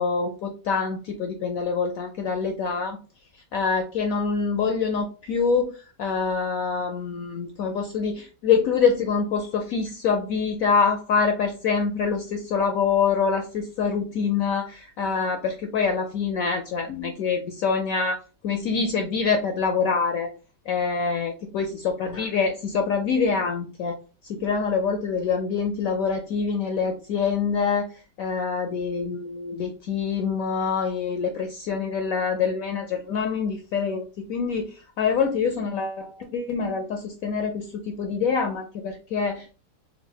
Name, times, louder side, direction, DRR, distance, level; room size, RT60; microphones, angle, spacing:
voice 1, 0.0-3.0 3.5-20.3 20.7-24.0 24.2-27.8 28.2-39.5, left 5 dB, 70° left, 4 dB, 0.8 m, -25 dB
4.0 x 2.0 x 4.3 m, 0.35 s
omnidirectional pair, 1.9 m